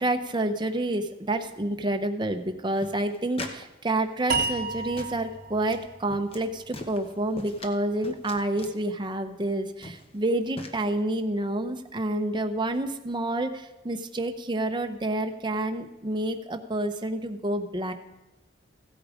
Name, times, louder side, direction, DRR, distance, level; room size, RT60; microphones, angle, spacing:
voice 1, 0.0-17.9, right 1 dB, 25° right, 6 dB, 0.8 m, -29 dB
sound 1, 2.8-3.6 3.9-4.7 5.0-5.2 5.7-5.8 6.1-6.4 6.7-7.7 8.0-8.8 9.4-9.5 9.8-10.2 10.6-10.9, left 2 dB, 30° left, 1.0 m, -41 dB
sound 2, 4.3-7.5, right 4 dB, 50° right, 1.0 m, -33 dB
15.5 x 8.6 x 5.0 m, 1.0 s
head